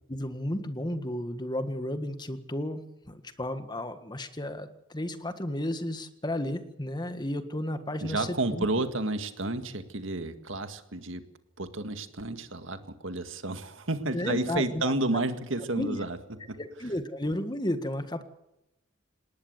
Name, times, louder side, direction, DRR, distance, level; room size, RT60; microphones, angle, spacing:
voice 1, 0.1-8.6 14.1-14.9 15.8-16.0 16.6-18.2, left 1 dB, 20° left, 9 dB, 1.7 m, -33 dB
voice 2, 8.0-11.3 11.6-16.2 16.5-16.6, right 2 dB, 70° right, 9 dB, 2.0 m, -31 dB
19.5 x 18.5 x 8.1 m, 0.89 s
head